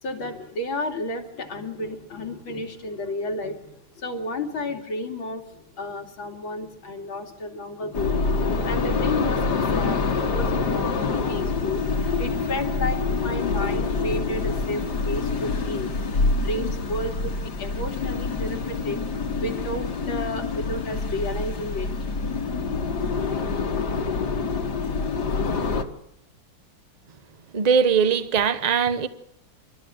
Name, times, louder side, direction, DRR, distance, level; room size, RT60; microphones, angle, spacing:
voice 1, 0.0-8.2 8.6-16.0 16.2-19.1 19.3-21.9, left 1 dB, 80° left, 3.4 m, -32 dB
sound 1, 7.9-25.8, left 4 dB, 55° left, 2.2 m, -26 dB
voice 2, 27.5-29.1, right 6 dB, 30° right, 0.8 m, -20 dB
27.5 x 13.0 x 7.8 m
omnidirectional pair, 2.2 m